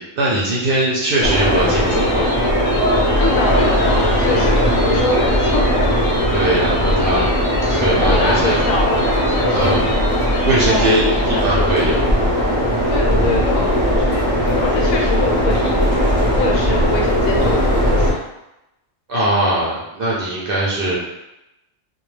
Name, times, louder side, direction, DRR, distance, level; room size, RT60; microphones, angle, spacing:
voice 1, 0.0-2.3 6.3-7.3 7.7-8.6 9.5-9.9 10.4-12.0 19.1-21.0, right 1 dB, 60° right, -5 dB, 0.6 m, -20 dB
sound 1, 1.2-18.1, equal, 40° left, 0.5 m, -18 dB
sound 2, 1.7-10.9, left 2 dB, 65° left, 0.8 m, -31 dB
voice 2, 3.2-5.9 8.0-10.3 10.6-11.9 12.9-16.0 16.3-18.2, left 3 dB, 90° left, 0 dB, 1.0 m, -25 dB
2.3 x 2.1 x 3.1 m, 0.91 s
omnidirectional pair, 1.4 m